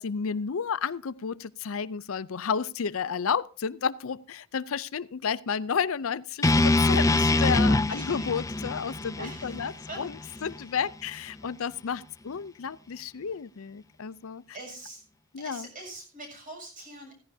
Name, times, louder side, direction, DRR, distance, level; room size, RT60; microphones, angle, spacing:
voice 1, 0.0-10.1 10.4-14.4 15.3-15.7, left 6 dB, 70° left, 0.5 m, -31 dB
sound 1, 6.4-10.6, left 2 dB, 15° left, 0.5 m, -24 dB
voice 2, 7.9-8.3 9.2-10.5 14.5-15.0 15.4-17.2, right 1 dB, 40° right, 7.0 m, -43 dB
16.5 x 15.5 x 2.7 m
head